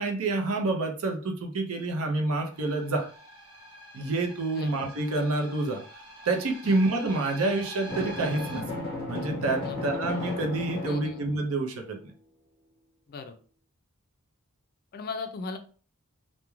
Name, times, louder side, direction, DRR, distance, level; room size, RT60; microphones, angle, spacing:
voice 1, 0.0-3.1 3.9-5.8 6.3-8.6 9.1-12.1, right 2 dB, 70° right, 3 dB, 0.6 m, -28 dB
sound 1, 2.5-8.6, equal, 20° right, 0.6 m, -45 dB
Drum, 7.9-11.7, left 2 dB, 20° left, 0.8 m, -34 dB
voice 2, 10.8-11.2 13.1-13.4 14.9-15.6, left 4 dB, 45° left, 7 dB, 0.3 m, -37 dB
2.3 x 2.1 x 3.0 m, 0.40 s
head